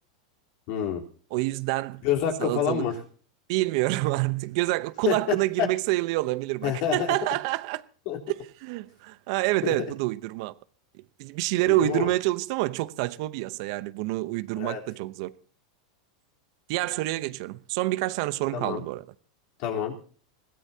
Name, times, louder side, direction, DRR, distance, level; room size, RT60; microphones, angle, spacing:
voice 1, 0.7-1.0 2.0-3.0 5.0-5.2 5.6-5.7 6.6-7.1 8.1-8.2 9.6-9.7 11.7-12.1 14.6-14.8 18.5-18.8 19.6-19.9, left 9 dB, 60° left, 4.0 m, -27 dB
voice 2, 1.3-2.0 2.4-2.9 3.5-7.8 8.3-10.5 11.2-15.3 16.7-19.1, right 19 dB, 60° right, 0.9 m, -27 dB
21.5 x 16.5 x 2.9 m
hypercardioid pair, 115°, 3 cm